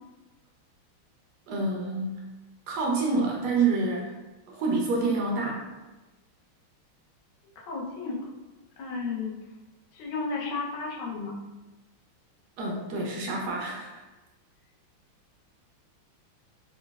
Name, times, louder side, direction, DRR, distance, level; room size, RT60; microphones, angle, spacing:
voice 1, 1.5-2.2 2.7-4.1 4.5-5.7 12.6-14.0, right 3 dB, 80° right, -2 dB, 0.9 m, -27 dB
voice 2, 7.6-8.3 8.8-9.4 9.9-11.3, left 4 dB, 75° left, -2 dB, 1.3 m, -33 dB
4.1 x 2.1 x 2.2 m, 1.1 s
omnidirectional pair, 2.3 m